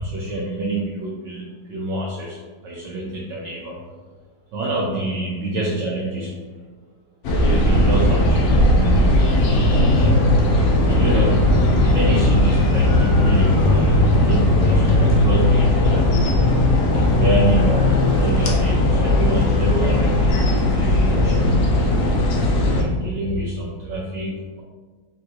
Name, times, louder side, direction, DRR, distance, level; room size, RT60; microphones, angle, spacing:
voice 1, 0.0-2.4 2.6-3.8 4.5-6.4 7.4-9.3 9.7-10.2 10.8-16.1 16.8-22.0 22.7-24.6, right 1 dB, 70° right, -4 dB, 1.1 m, -27 dB
sound 1, 7.2-22.8, left 1 dB, 70° left, 0.9 m, -17 dB
3.8 x 2.5 x 4.3 m, 1.4 s
omnidirectional pair, 2.3 m